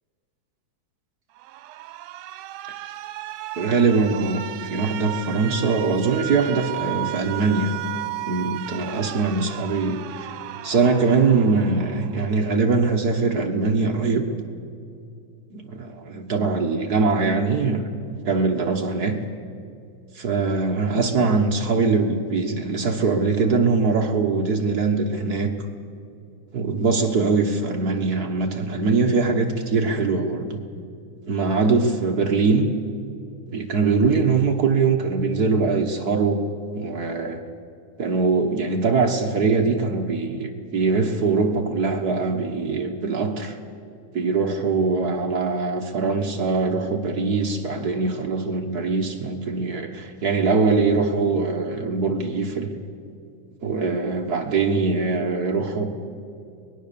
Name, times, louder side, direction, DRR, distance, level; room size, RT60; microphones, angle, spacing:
Alarm, 1.4-12.4, right 15 dB, 80° right, 2.2 m, -35 dB
voice 1, 3.6-7.7 8.2-10.4 10.6-14.3 15.5-19.2 20.1-25.5 26.5-30.6 31.3-32.7 33.5-36.4 36.7-37.4 38.0-43.6 44.1-52.7 53.6-55.9, right 4 dB, 55° right, 3 dB, 1.0 m, -22 dB
24.0 x 20.5 x 6.9 m, 2.5 s
omnidirectional pair, 3.6 m